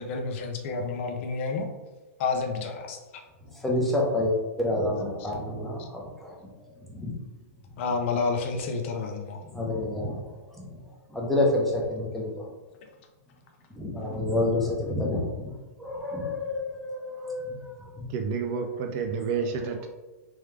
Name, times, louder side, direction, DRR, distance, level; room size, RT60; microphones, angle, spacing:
voice 1, 0.0-1.7 2.2-3.0 7.8-9.4, left 4 dB, 50° left, 4 dB, 0.6 m, -29 dB
voice 2, 3.4-7.2 7.7-7.8 9.4-12.5 13.7-15.5 15.8-18.1 19.8-19.9, left 2 dB, ahead, -4 dB, 0.8 m, -29 dB
voice 3, 18.1-19.9, right 6 dB, 35° right, 4 dB, 0.4 m, -29 dB
3.5 x 3.3 x 3.2 m, 1.2 s
hypercardioid pair, 145°, 9 cm